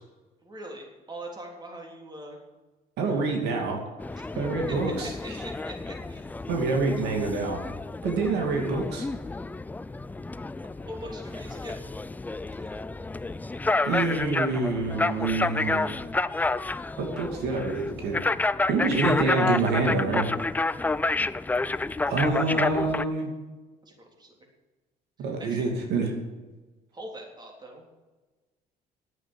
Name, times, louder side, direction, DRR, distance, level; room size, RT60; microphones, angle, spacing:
voice 1, 0.4-2.4 3.0-3.3 4.7-4.9 5.2-6.3 10.8-11.8 23.8-24.3 25.4-25.7 26.9-27.9, right 1 dB, 25° right, 1 dB, 3.5 m, -42 dB
voice 2, 3.0-3.8 4.4-5.1 6.5-7.6 8.0-9.1 13.8-16.1 17.0-18.2 18.7-20.3 22.1-23.3 25.2-26.1, right 3 dB, 80° right, 2 dB, 2.5 m, -26 dB
sound 1, 4.0-23.0, left 3 dB, 10° left, 0.4 m, -30 dB
11.0 x 8.9 x 8.4 m, 1.2 s
cardioid pair, 110°, 17 cm